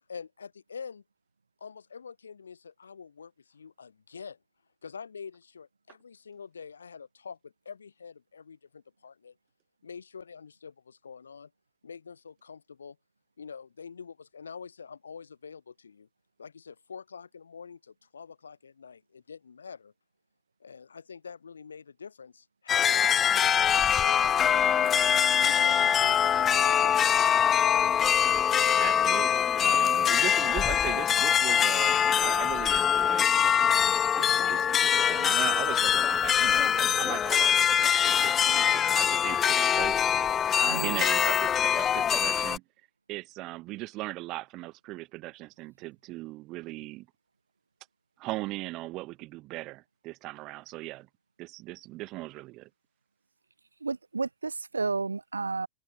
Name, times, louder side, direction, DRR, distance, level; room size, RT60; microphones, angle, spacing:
voice 1, 0.1-1.0 1.6-4.4 4.8-9.3 9.8-11.5 11.8-13.0 13.4-16.1 16.4-19.9 20.6-24.1 24.4-25.0 25.4-27.0, left 6 dB, 70° left, 3.7 m, -45 dB
sound 1, 22.7-42.6, left 8 dB, 25° left, 1.6 m, -24 dB
voice 2, 28.8-39.9 40.6-42.6 43.1-47.1 48.2-51.1 51.4-52.7, right 20 dB, 40° right, 2.2 m, -39 dB
voice 3, 40.7-41.0 53.8-55.7, right 4 dB, 80° right, 3.2 m, -32 dB
figure-of-eight pair, 90°, 0 cm